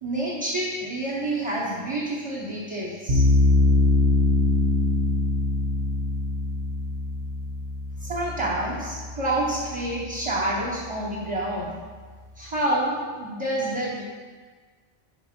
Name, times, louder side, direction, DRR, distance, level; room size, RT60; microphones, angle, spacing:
voice 1, 0.0-3.2 8.0-11.7 12.4-14.0, right 1 dB, 30° right, -7 dB, 1.1 m, -28 dB
sound 1, 3.1-10.2, left 2 dB, 70° right, 1.3 m, -23 dB
8.1 x 5.3 x 4.4 m, 1.5 s
omnidirectional pair, 1.1 m